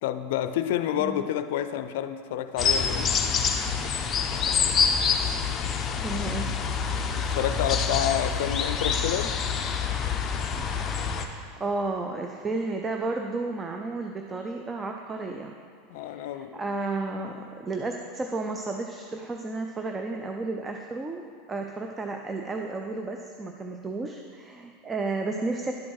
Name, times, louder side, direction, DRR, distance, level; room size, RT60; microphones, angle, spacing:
voice 1, 0.0-3.1 7.1-9.3 15.9-16.6, left 11 dB, 70° left, 11 dB, 0.4 m, -29 dB
sound 1, 2.6-11.2, left 6 dB, 30° left, 0.6 m, -26 dB
voice 2, 5.7-6.6 11.2-15.5 16.0-21.2 21.5-25.7, right 3 dB, 20° right, 3 dB, 0.4 m, -32 dB
11.5 x 4.6 x 4.5 m, 2.2 s
supercardioid pair, 130°, 0 cm